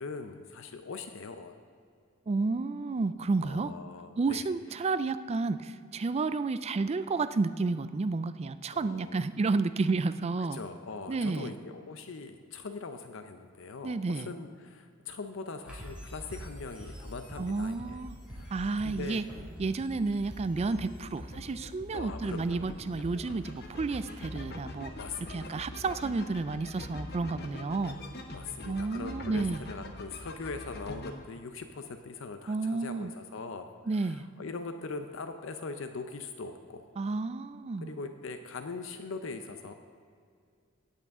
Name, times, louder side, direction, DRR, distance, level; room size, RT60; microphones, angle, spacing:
voice 1, 0.0-1.5 3.4-4.5 8.7-9.2 10.5-18.0 18.3-18.6 18.8-19.3 21.9-22.6 25.0-25.7 28.3-36.9 37.8-39.7, left 4 dB, 65° left, 7 dB, 0.6 m, -41 dB
voice 2, 2.3-3.7 4.2-10.6 11.1-11.5 13.8-14.3 17.4-18.1 18.5-19.2 19.6-24.9 25.3-28.0 28.7-29.6 32.5-33.1 33.9-34.2 37.0-38.0, right 3 dB, 30° right, 13 dB, 0.3 m, -31 dB
sound 1, 15.7-26.6, equal, 5° right, 2.8 m, -47 dB
sound 2, 20.4-31.1, left 2 dB, 50° left, 1.0 m, -44 dB
17.0 x 8.4 x 3.7 m, 2.3 s
head